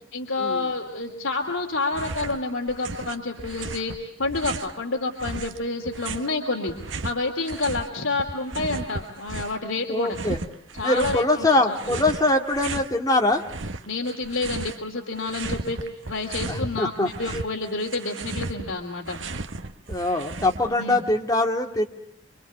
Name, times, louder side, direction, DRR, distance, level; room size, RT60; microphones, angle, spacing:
voice 1, 0.1-6.7 7.0-10.2 10.7-12.0 13.9-15.8 16.1-19.2 20.8-21.0, left 3 dB, 80° left, 2 dB, 2.7 m, -29 dB
sound 1, 1.9-2.4 2.7-4.8 5.2-7.9 8.2-9.7 10.1-11.3 11.7-12.9 13.3-14.9 15.1-16.6 17.0-20.8, right 3 dB, 70° right, 1.2 m, -35 dB
voice 2, 9.9-10.4 10.8-13.4 16.5-17.1 19.9-21.9, left 2 dB, 20° left, 2 dB, 2.3 m, -23 dB
26.5 x 25.5 x 8.1 m, 0.70 s
head